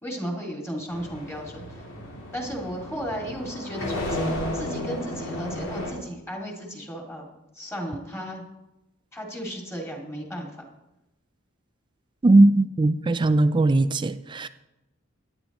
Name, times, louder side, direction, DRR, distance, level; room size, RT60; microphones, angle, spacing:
voice 1, 0.0-1.8 2.3-7.3 7.6-8.4 9.1-10.5, equal, 15° left, 2.4 m, -34 dB
sound 1, 0.9-5.9, left 1 dB, 70° left, 3.0 m, -33 dB
voice 2, 12.2-14.5, right 2 dB, 20° right, 0.4 m, -19 dB
17.0 x 11.0 x 3.0 m
head